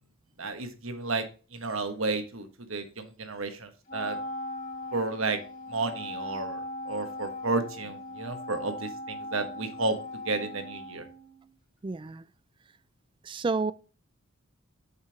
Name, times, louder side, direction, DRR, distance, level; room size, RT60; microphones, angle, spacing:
voice 1, 0.4-1.2 1.5-4.1 4.9-5.4 5.7-6.6 6.9-9.9 10.2-11.0, right 3 dB, 70° right, 1.3 m, -32 dB
Wind instrument woodwind instrument, 3.9-11.5, left 2 dB, 35° left, 2.5 m, -39 dB
voice 2, 11.8-12.2 13.2-13.7, right 3 dB, 25° right, 0.3 m, -30 dB
6.5 x 5.3 x 4.7 m
head